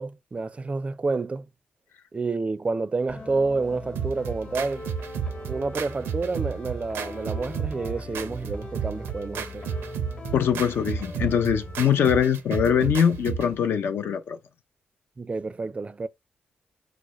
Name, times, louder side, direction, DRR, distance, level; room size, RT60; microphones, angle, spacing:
voice 1, 0.0-1.5 2.1-4.9 5.5-9.7 15.2-16.1, right 3 dB, 30° right, 0.4 m, -29 dB
sound 1, 3.1-11.8, left 2 dB, 45° left, 1.1 m, -40 dB
sound 2, 4.0-13.6, right 7 dB, 85° right, 0.5 m, -33 dB
voice 2, 10.3-14.4, left 8 dB, 70° left, 0.5 m, -22 dB
4.9 x 2.1 x 3.0 m
supercardioid pair, 55°, 4 cm